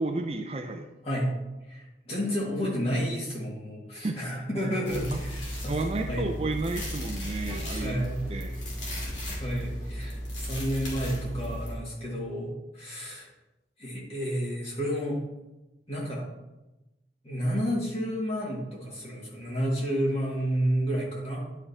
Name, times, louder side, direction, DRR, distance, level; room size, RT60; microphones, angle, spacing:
voice 1, 0.0-0.9 3.9-4.2 5.1-5.2 5.7-8.0 8.3-8.5, right 2 dB, 30° right, 4 dB, 0.4 m, -32 dB
voice 2, 1.7-5.8 6.1-6.3 7.8-8.3 9.4-13.3 13.8-15.2 15.9-16.2 17.2-21.4, equal, 35° left, -5 dB, 2.0 m, -30 dB
sound 1, 4.9-11.8, equal, 75° left, 2.2 m, -35 dB
10.0 x 4.9 x 2.8 m, 1.0 s
head